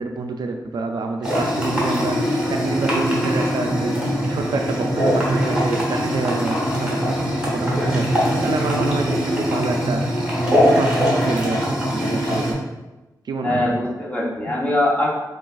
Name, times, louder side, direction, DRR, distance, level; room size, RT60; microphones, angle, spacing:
voice 1, 0.0-2.2 2.5-4.0 4.3-8.1 8.4-10.3 10.6-10.9 11.2-12.7 13.2-13.7, right 3 dB, 70° right, 4 dB, 0.4 m, -27 dB
sound 1, 1.2-12.5, equal, 10° right, 0.9 m, -21 dB
voice 2, 13.4-15.1, left 1 dB, 20° left, -4 dB, 0.8 m, -22 dB
6.2 x 2.4 x 2.3 m, 1.1 s
wide cardioid pair, 135°, 8 cm